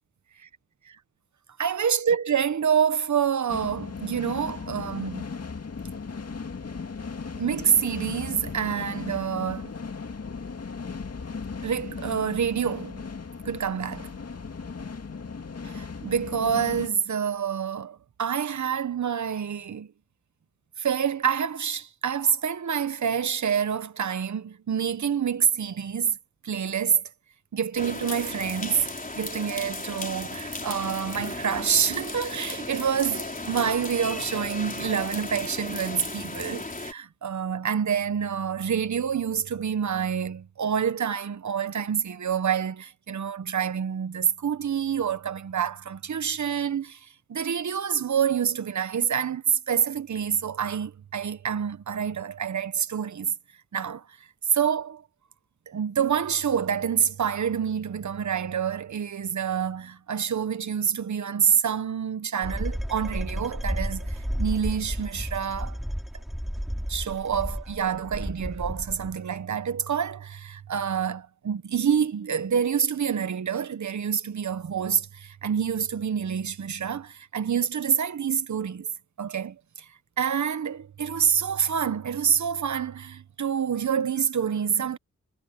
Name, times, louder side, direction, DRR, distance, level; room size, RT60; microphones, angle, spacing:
voice 1, 1.6-5.3 7.4-9.7 11.6-13.0 13.4-14.1 15.7-19.9 20.8-26.2 26.4-27.0 27.5-28.9 29.1-47.0 47.3-53.3 53.7-54.0 54.5-55.0 55.7-65.8 66.9-78.9 79.2-79.6 80.2-85.0, right 7 dB, 70° right, 1.2 m, -27 dB
sound 1, 3.5-16.9, left 5 dB, 55° left, 2.3 m, -37 dB
sound 2, 27.7-36.9, left 2 dB, 25° left, 4.0 m, -35 dB
sound 3, 62.4-69.2, equal, ahead, 4.7 m, -32 dB
cardioid pair, 45°, 30 cm